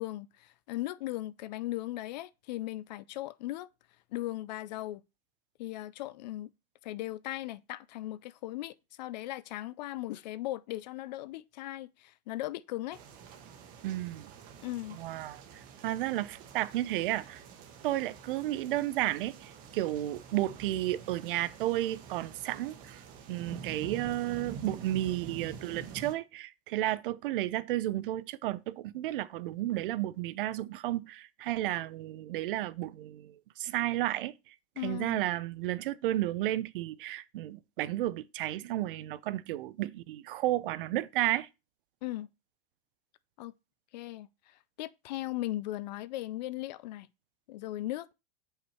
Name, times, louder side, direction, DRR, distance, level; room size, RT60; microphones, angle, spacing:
voice 1, 0.0-3.7 4.1-5.0 5.6-6.5 6.8-13.0 14.6-15.0 34.8-35.2 42.0-42.3 43.4-43.5 43.9-47.1 47.5-48.1, left 16 dB, 45° left, 0.4 m, -38 dB
sound 1, 12.9-26.1, right 6 dB, 30° right, 1.1 m, -47 dB
voice 2, 13.8-14.3 14.9-15.4 15.8-17.4 17.8-23.0 23.3-34.3 34.8-41.5, right 15 dB, 60° right, 0.6 m, -32 dB
8.0 x 5.6 x 4.3 m
supercardioid pair, 175°, 30 cm